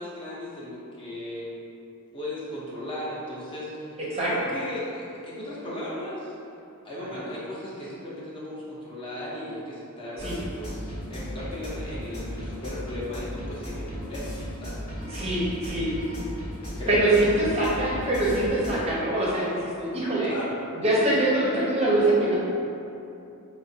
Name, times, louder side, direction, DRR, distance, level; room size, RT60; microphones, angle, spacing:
voice 1, 0.0-1.5 2.1-6.3 6.8-14.3 14.6-15.4 16.8-17.3 20.2-20.6, left 1 dB, 25° left, -8 dB, 0.6 m, -36 dB
sound 1, 10.2-18.7, equal, 75° left, 1.1 m, -36 dB
voice 2, 15.0-15.9 16.9-20.3 20.7-22.3, right 1 dB, 30° right, -6 dB, 0.5 m, -24 dB
4.8 x 2.1 x 2.6 m, 2.8 s
head